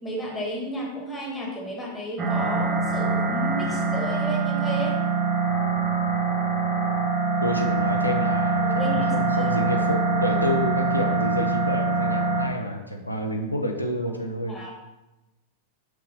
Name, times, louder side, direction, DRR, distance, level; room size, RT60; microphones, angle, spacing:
voice 1, 0.0-5.0 8.6-9.6 14.5-14.7, equal, 10° left, -1 dB, 1.6 m, -33 dB
sound 1, 2.2-12.5, right 4 dB, 25° right, 1.0 m, -24 dB
voice 2, 7.4-14.5, left 1 dB, 90° left, 2 dB, 0.5 m, -29 dB
5.9 x 3.2 x 5.2 m, 1.0 s
figure-of-eight pair, 90°, 0 cm